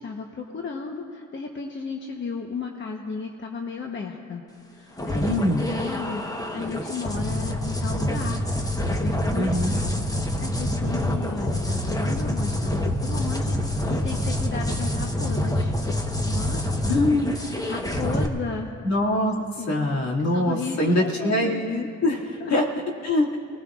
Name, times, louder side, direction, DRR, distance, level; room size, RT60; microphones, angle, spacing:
voice 1, 0.0-4.4 4.7-8.4 8.9-15.7 16.2-18.7 19.6-19.8 20.2-21.6 22.4-22.5, left 4 dB, 40° left, 2 dB, 1.1 m, -34 dB
sound 1, 5.0-18.3, left 1 dB, 10° left, 1.0 m, -26 dB
voice 2, 5.2-5.6 9.3-9.8 16.9-17.4 18.8-19.3 19.7-22.6 23.0-23.4, left 1 dB, 65° left, -2 dB, 2.3 m, -23 dB
23.5 x 18.5 x 2.5 m, 2.4 s
cardioid pair, 90°, 30 cm